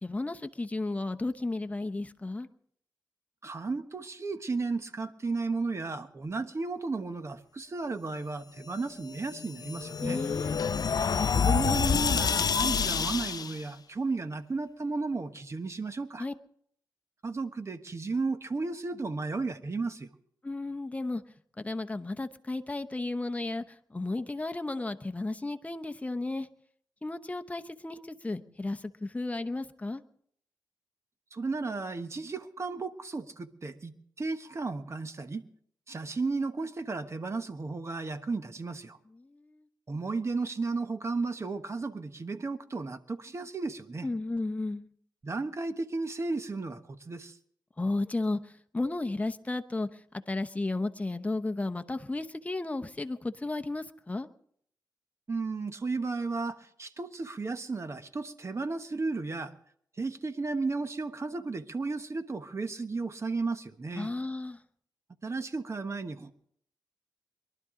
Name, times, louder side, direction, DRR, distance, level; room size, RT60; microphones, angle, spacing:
voice 1, 0.0-2.5 10.0-10.6 16.2-16.3 20.4-21.2 21.6-26.5 27.0-30.0 39.1-39.7 44.0-44.9 47.8-54.3 64.0-64.6, left 2 dB, 20° left, 7 dB, 0.9 m, -34 dB
voice 2, 3.4-10.2 11.3-16.2 17.2-20.1 31.3-35.4 35.9-39.0 39.9-44.1 45.2-47.4 55.3-59.5 60.0-64.1 65.2-66.3, right 3 dB, 40° right, 9 dB, 1.2 m, -34 dB
sound 1, 9.1-13.6, left 6 dB, 60° left, 0.6 m, -28 dB
22.5 x 12.0 x 3.8 m, 0.63 s
cardioid pair, 75°, 7 cm